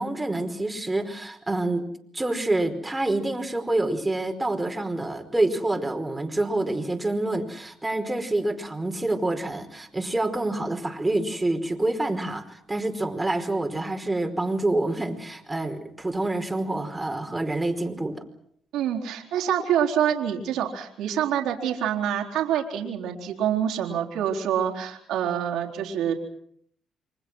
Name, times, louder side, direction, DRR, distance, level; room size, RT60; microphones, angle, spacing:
voice 1, 0.0-1.8 2.1-18.2, right 2 dB, 15° right, 4 dB, 5.0 m, -27 dB
voice 2, 18.7-26.1, right 9 dB, 85° right, 1 dB, 4.0 m, -26 dB
29.0 x 25.0 x 6.3 m, 0.68 s
cardioid pair, 90°, 0 cm